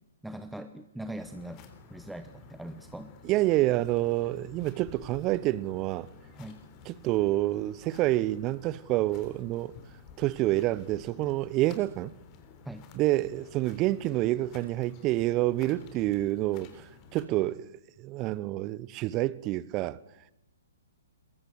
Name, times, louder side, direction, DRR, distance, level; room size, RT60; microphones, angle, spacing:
voice 1, 0.2-1.6 1.9-3.1 6.3-6.6 12.6-12.9, right 1 dB, 5° right, 1.0 m, -41 dB
sound 1, 1.2-17.2, left 6 dB, 30° left, 3.6 m, -52 dB
voice 2, 3.2-6.1 6.9-9.7 10.2-12.1 12.9-17.7 18.0-20.0, right 16 dB, 30° right, 0.8 m, -28 dB
22.0 x 22.0 x 8.1 m
figure-of-eight pair, 120°, 0 cm